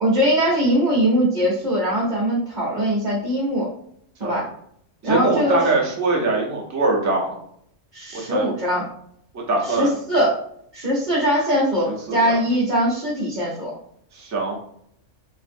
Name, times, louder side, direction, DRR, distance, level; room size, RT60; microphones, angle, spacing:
voice 1, 0.0-3.7 4.2-4.5 5.0-5.6 7.9-8.8 9.6-10.4 10.7-13.7, equal, 40° right, -6 dB, 0.8 m, -21 dB
voice 2, 5.0-7.4 8.1-8.5 9.5-9.9 12.1-12.4 14.1-14.6, right 3 dB, 25° right, -2 dB, 0.4 m, -22 dB
3.0 x 2.5 x 2.6 m, 0.67 s
omnidirectional pair, 1.3 m